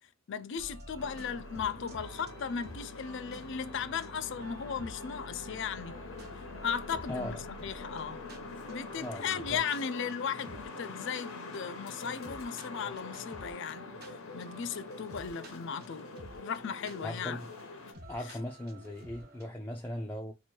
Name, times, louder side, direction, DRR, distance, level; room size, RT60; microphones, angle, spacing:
voice 1, 0.3-6.0 6.6-7.4 7.6-8.2 8.7-13.9 14.3-16.1 16.4-17.4, left 7 dB, 60° left, 0.4 m, -36 dB
sound 1, 0.6-19.5, right 1 dB, 50° right, 1.0 m, -50 dB
sound 2, 1.0-17.9, left 3 dB, 80° left, 0.9 m, -45 dB
voice 2, 7.1-7.4 9.0-9.6 17.0-17.5 18.1-20.3, left 1 dB, 10° left, 0.5 m, -38 dB
3.0 x 2.5 x 4.4 m
head